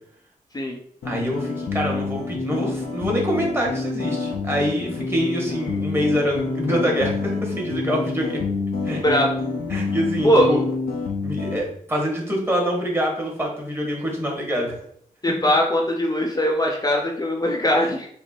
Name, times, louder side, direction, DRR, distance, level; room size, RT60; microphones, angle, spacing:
sound 1, 1.0-11.6, left 4 dB, 90° left, 0.7 m, -28 dB
voice 1, 1.0-8.4 8.8-9.0 9.7-10.6 11.2-14.8 17.8-17.9, equal, 15° right, -1 dB, 1.5 m, -25 dB
voice 2, 10.2-10.6 15.2-18.1, equal, 25° left, 0 dB, 0.6 m, -20 dB
5.2 x 2.1 x 4.5 m, 0.66 s
cardioid pair, 75°, 15 cm